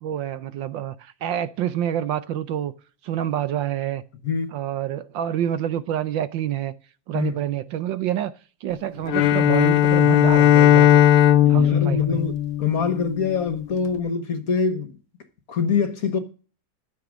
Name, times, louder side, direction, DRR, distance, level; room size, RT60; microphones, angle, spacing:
voice 1, 0.0-2.7 3.0-4.0 4.5-6.7 7.1-8.3 8.6-11.0 11.5-12.2, right 11 dB, 70° right, 1.3 m, -27 dB
Bowed string instrument, 9.1-13.3, left 11 dB, 85° left, 1.6 m, -17 dB
voice 2, 11.4-12.3 12.6-15.0 15.5-16.2, left 5 dB, 50° left, 1.4 m, -24 dB
12.5 x 6.9 x 6.2 m
omnidirectional pair, 2.3 m